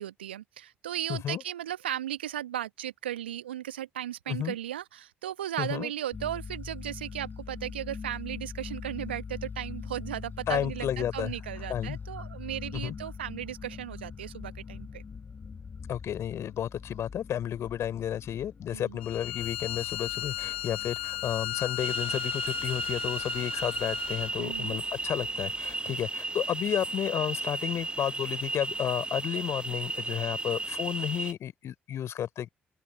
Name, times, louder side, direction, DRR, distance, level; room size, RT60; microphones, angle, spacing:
voice 1, 0.0-15.0 18.7-19.0 24.4-24.8 25.9-26.0, right 12 dB, 80° right, 1.4 m, -36 dB
voice 2, 1.1-1.4 4.3-4.6 5.6-5.9 10.5-11.3 11.7-12.0 12.7-13.0 15.9-32.5, left 10 dB, 55° left, 3.6 m, -32 dB
sound 1, 6.1-25.7, left 5 dB, 35° left, 5.0 m, -43 dB
Bowed string instrument, 19.0-24.4, left 13 dB, 80° left, 1.0 m, -35 dB
sound 2, 21.8-31.3, right 3 dB, 15° right, 0.8 m, -34 dB
open air
figure-of-eight pair, 45°, 6 cm